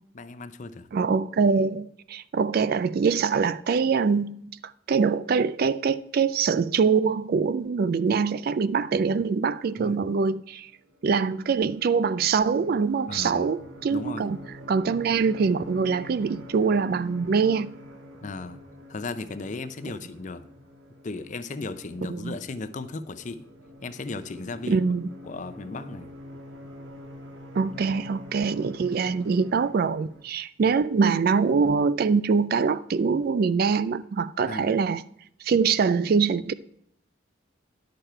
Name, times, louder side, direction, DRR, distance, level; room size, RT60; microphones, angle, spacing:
voice 1, 0.1-0.9 9.8-10.0 13.1-13.5 13.9-14.3 18.2-18.6 18.9-20.5 21.0-23.4 23.8-24.8 25.2-26.1 27.8-28.0 34.5-34.7, left 3 dB, 40° left, 0.5 m, -36 dB
voice 2, 0.9-4.4 4.9-10.7 11.0-14.4 14.7-17.7 22.1-22.3 24.7-25.1 27.6-35.0 35.4-36.5, right 5 dB, 50° right, 0.3 m, -24 dB
sound 1, 10.7-30.2, left 1 dB, 75° right, 1.4 m, -46 dB
10.5 x 6.8 x 4.4 m
head